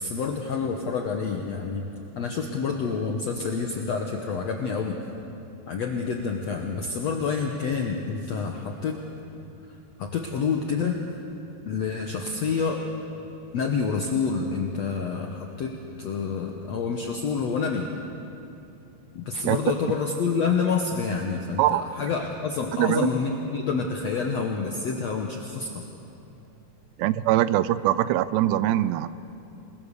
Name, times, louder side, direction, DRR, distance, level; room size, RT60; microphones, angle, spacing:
voice 1, 0.0-1.9 2.1-5.0 5.7-9.0 10.0-11.0 11.6-12.9 13.5-17.9 19.1-25.8, left 5 dB, 75° left, 2 dB, 1.6 m, -28 dB
voice 2, 22.8-23.1 27.0-29.1, right 14 dB, 90° right, 15 dB, 2.8 m, -22 dB
27.5 x 21.0 x 6.8 m, 2.8 s
omnidirectional pair, 4.8 m